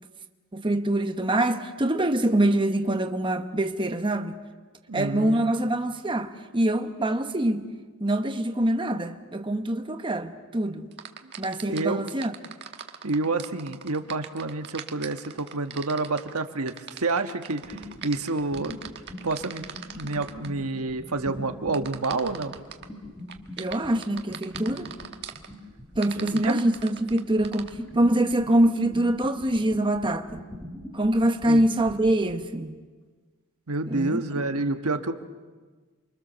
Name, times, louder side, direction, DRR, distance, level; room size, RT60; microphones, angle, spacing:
voice 1, 0.5-4.4 4.9-7.7 8.0-10.9 11.4-12.3 23.6-24.9 26.0-30.4 30.9-32.7 33.9-34.2, right 1 dB, 20° right, 1.0 m, -24 dB
voice 2, 4.9-5.5 11.7-12.0 13.0-16.7 17.0-18.8 19.2-19.7 20.0-22.5 26.2-26.6 31.5-31.6 33.7-35.1, right 3 dB, 85° right, 1.3 m, -28 dB
sound 1, 10.9-20.5 21.7-22.9 23.3-25.5 26.0-27.7, right 8 dB, 50° right, 1.4 m, -40 dB
sound 2, 17.6-32.4, left 1 dB, 10° left, 3.2 m, -42 dB
29.0 x 24.0 x 6.9 m
head